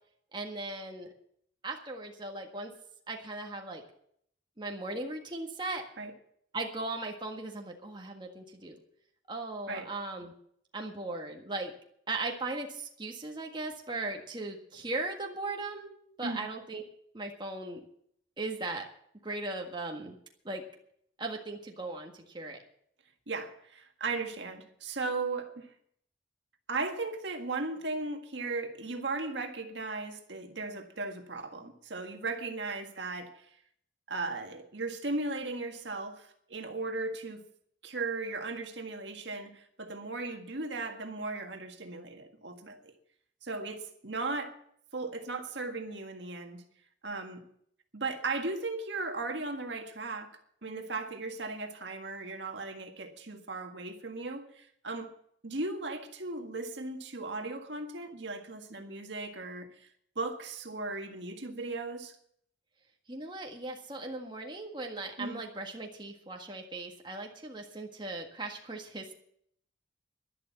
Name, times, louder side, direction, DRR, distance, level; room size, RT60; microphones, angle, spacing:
voice 1, 0.3-1.1 1.6-2.7 3.1-3.8 4.6-5.8 6.5-8.8 9.3-10.3 10.7-11.7 12.1-15.9 16.2-16.8 17.1-17.8 18.4-18.8 19.2-20.2 20.5-20.6 21.2-22.6 63.1-69.1, right 2 dB, 25° right, 1.7 m, -38 dB
voice 2, 23.3-25.7 26.7-33.5 34.1-37.5 37.8-42.9 43.4-44.6 44.9-46.6 47.0-47.4 47.9-55.1 55.4-59.9 60.2-62.2 65.2-65.4, right 3 dB, 70° right, 1.8 m, -37 dB
12.0 x 11.5 x 7.1 m
head